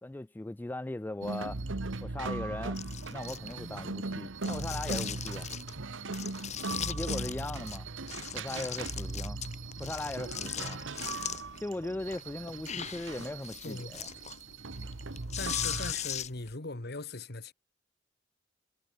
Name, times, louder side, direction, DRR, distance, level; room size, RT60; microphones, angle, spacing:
voice 1, 0.0-1.6 2.0-2.8 3.1-5.5 6.8-7.9 8.3-9.4 9.8-10.8 11.6-14.1, left 2 dB, 10° left, 0.3 m, -38 dB
sound 1, 1.2-15.9, right 3 dB, 80° right, 1.3 m, -39 dB
sound 2, 2.8-3.8 4.4-5.8 6.1-7.8 8.1-11.6 12.0-16.5, left 9 dB, 35° left, 1.2 m, -39 dB
Cricket, 8.7-14.3, right 6 dB, 25° right, 2.2 m, -57 dB
voice 2, 15.4-17.5, left 3 dB, 55° left, 1.8 m, -40 dB
head